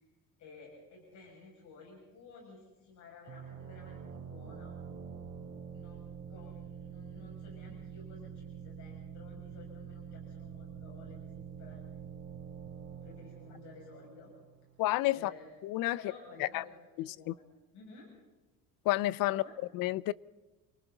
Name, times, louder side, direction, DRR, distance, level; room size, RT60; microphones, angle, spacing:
voice 1, 0.4-4.0 4.3-4.7 5.7-11.8 13.0-14.3 15.1-15.5 15.9-17.4 17.7-18.1 19.3-19.6, left 3 dB, 55° left, 6.7 m, -53 dB
sound 1, 3.3-14.8, right 7 dB, 40° right, 3.0 m, -46 dB
voice 2, 14.8-15.3 15.6-16.0 16.4-16.6 17.0-17.3 18.9-19.4 19.7-20.1, left 16 dB, 80° left, 0.6 m, -30 dB
29.5 x 24.0 x 4.0 m
cardioid pair, 175°, 33 cm